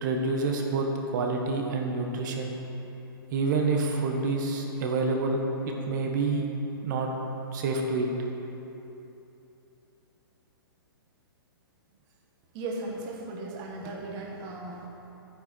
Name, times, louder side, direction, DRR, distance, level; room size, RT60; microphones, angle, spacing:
voice 1, 0.0-2.5 3.3-5.4 5.7-6.5 6.8-7.1 7.5-8.1, right 3 dB, 50° right, 2 dB, 1.5 m, -28 dB
voice 2, 12.5-14.9, right 2 dB, 35° right, -1 dB, 1.7 m, -36 dB
9.9 x 9.4 x 4.6 m, 3.0 s
hypercardioid pair, 130°, 12 cm